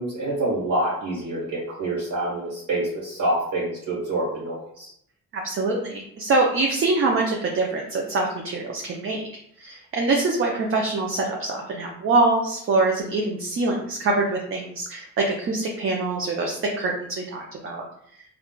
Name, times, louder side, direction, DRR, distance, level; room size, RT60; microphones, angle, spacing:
voice 1, 0.0-4.9, right 1 dB, 75° right, -7 dB, 1.2 m, -27 dB
voice 2, 5.3-9.3 9.6-17.8, right 3 dB, 45° right, 0 dB, 0.5 m, -24 dB
3.6 x 2.3 x 2.2 m, 0.70 s
cardioid pair, 85°, 31 cm